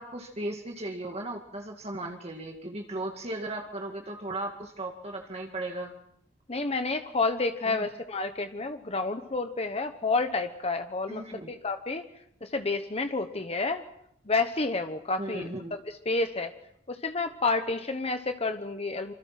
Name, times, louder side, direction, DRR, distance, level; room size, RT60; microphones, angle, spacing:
voice 1, 0.0-5.9 7.7-7.9 11.1-11.5 15.2-15.7, right 1 dB, 35° right, 2 dB, 2.1 m, -36 dB
voice 2, 6.5-12.0 12.4-13.8 14.3-16.5 16.9-19.1, left 3 dB, 35° left, 7 dB, 1.1 m, -30 dB
26.0 x 26.0 x 6.0 m, 0.73 s
head